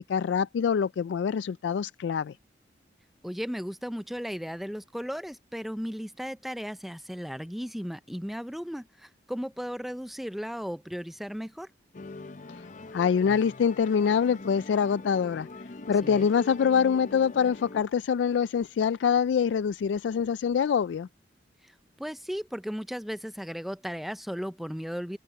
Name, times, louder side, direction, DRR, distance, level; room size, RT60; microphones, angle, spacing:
voice 1, 0.0-2.4 12.5-12.7 12.9-15.5 15.9-21.1, left 7 dB, 85° left, 0.3 m, -25 dB
voice 2, 3.2-11.7 16.0-16.3 22.0-25.2, equal, ahead, 0.5 m, -35 dB
Musical instrument, 11.9-17.8, left 3 dB, 45° left, 0.7 m, -43 dB
open air
head